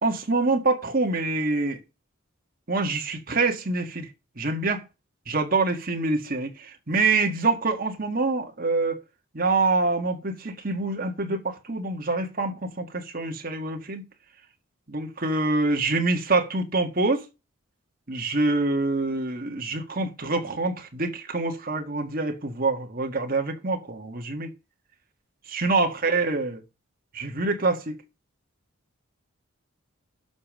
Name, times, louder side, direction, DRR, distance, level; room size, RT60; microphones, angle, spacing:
voice 1, 0.0-1.8 2.7-4.1 4.4-4.8 5.3-9.0 9.3-14.0 14.9-17.2 18.1-24.5 25.5-26.6 27.1-28.0, right 3 dB, 40° right, 1.7 m, -25 dB
11.5 x 5.1 x 6.3 m
head